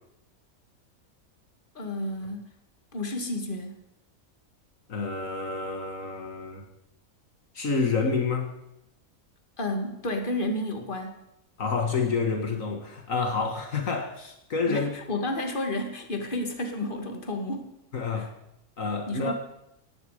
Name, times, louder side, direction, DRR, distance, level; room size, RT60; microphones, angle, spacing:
voice 1, 1.7-2.5 2.9-3.8 9.6-11.2 14.7-17.7 18.1-18.3 19.1-19.3, left 1 dB, 35° left, 4 dB, 2.4 m, -31 dB
voice 2, 4.9-6.6 7.5-8.5 11.6-14.9 17.9-18.3 18.8-19.3, left 4 dB, 70° left, 4 dB, 2.1 m, -28 dB
17.5 x 16.0 x 5.0 m, 0.85 s
omnidirectional pair, 1.5 m